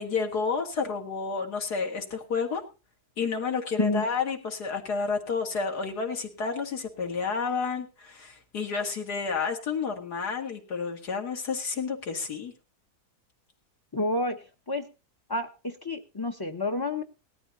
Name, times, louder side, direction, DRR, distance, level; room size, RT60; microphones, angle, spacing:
voice 1, 0.0-2.6 3.2-12.5, left 5 dB, 75° left, 2 dB, 2.6 m, -30 dB
voice 2, 13.9-14.8 15.3-17.0, left 2 dB, 25° left, 8 dB, 0.6 m, -29 dB
19.0 x 13.5 x 2.7 m, 0.32 s
omnidirectional pair, 1.7 m